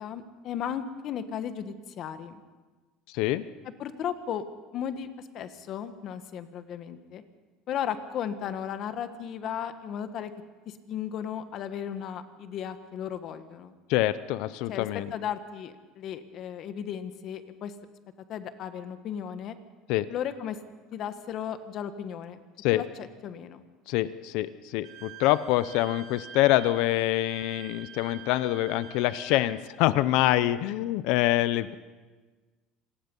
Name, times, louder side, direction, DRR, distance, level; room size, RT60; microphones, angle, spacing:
voice 1, 0.0-2.4 3.8-4.4 4.7-7.2 7.7-10.3 10.7-13.7 14.7-17.7 18.3-19.6 20.1-20.6 20.9-22.4 22.7-23.6, left 9 dB, 45° left, 10 dB, 1.4 m, -35 dB
voice 2, 3.1-3.4 13.9-15.1 19.9-20.1 22.6-22.8 23.9-31.8, left 15 dB, 70° left, 15 dB, 0.7 m, -25 dB
Wind instrument woodwind instrument, 24.8-29.5, right 9 dB, 65° right, 2.1 m, -46 dB
26.0 x 19.0 x 5.5 m, 1.3 s
cardioid pair, 150°, 0 cm